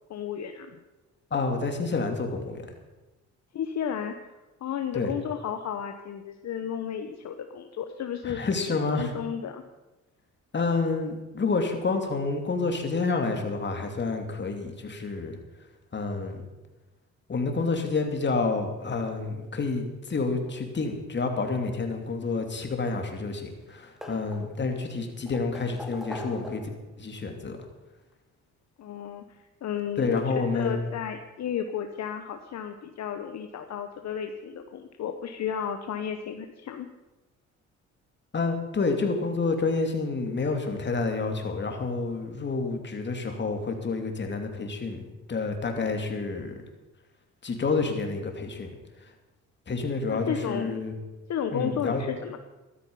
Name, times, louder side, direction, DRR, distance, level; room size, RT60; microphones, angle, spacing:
voice 1, 0.1-0.8 3.5-4.2 4.6-8.4 8.7-9.6 28.8-36.9 50.1-50.8 51.3-52.4, left 8 dB, 60° left, 6 dB, 1.1 m, -33 dB
voice 2, 1.3-2.7 4.9-5.1 8.2-9.1 10.5-15.4 15.9-16.4 17.3-26.6 27.0-27.6 30.0-30.9 38.3-45.0 45.3-46.5 47.4-48.7 49.7-50.9 51.5-52.0, left 4 dB, 35° left, 4 dB, 2.7 m, -29 dB
sound 1, 22.7-23.3 23.6-24.7 25.3-26.9 28.1-28.2 29.7-29.8 30.2-30.3, left 1 dB, ahead, 2.7 m, -42 dB
13.5 x 12.5 x 5.5 m, 1.1 s
cardioid pair, 90°, 30 cm